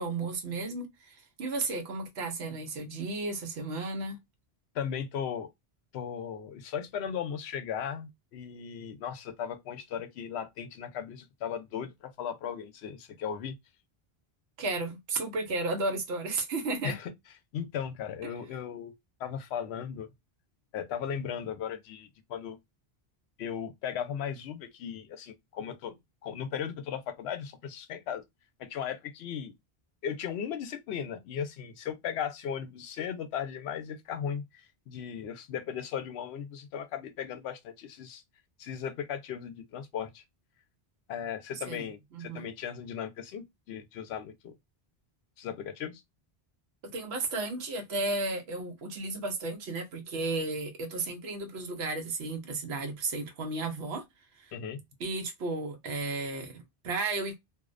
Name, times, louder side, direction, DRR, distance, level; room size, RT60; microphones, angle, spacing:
voice 1, 0.0-4.2 14.6-17.0 18.2-18.3 41.7-42.5 46.8-54.0 54.4-54.6 55.0-57.3, right 3 dB, 85° right, 0.9 m, -34 dB
voice 2, 4.7-5.5 5.9-13.5 16.8-17.1 17.5-18.9 19.2-20.1 20.7-22.6 23.4-25.9 26.2-28.2 28.6-29.5 30.0-38.2 38.6-40.2 41.1-44.5 45.4-46.0 54.5-54.8, left 8 dB, 85° left, 0.8 m, -37 dB
2.5 x 2.1 x 2.4 m
omnidirectional pair, 1.1 m